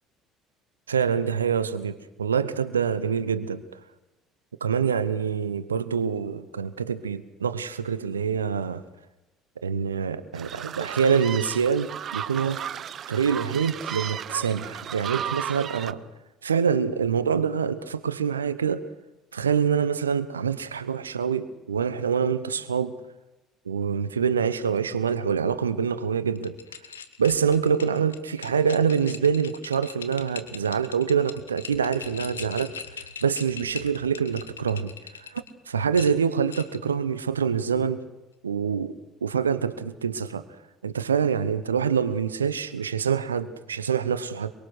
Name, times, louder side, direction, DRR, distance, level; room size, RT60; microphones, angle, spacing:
voice 1, 0.9-3.6 4.6-8.8 9.6-12.6 13.1-16.0 16.4-18.8 19.3-22.9 23.7-26.6 27.2-35.4 35.7-38.0 38.4-38.9 39.2-40.4 40.8-44.5, right 7 dB, 85° right, 13 dB, 0.9 m, -25 dB
sound 1, 10.3-15.9, right 9 dB, 50° right, 0.8 m, -34 dB
sound 2, 26.4-35.5 35.9-36.9, left 7 dB, 85° left, 1.0 m, -41 dB
24.0 x 23.5 x 6.3 m, 1.0 s
figure-of-eight pair, 55°, 0 cm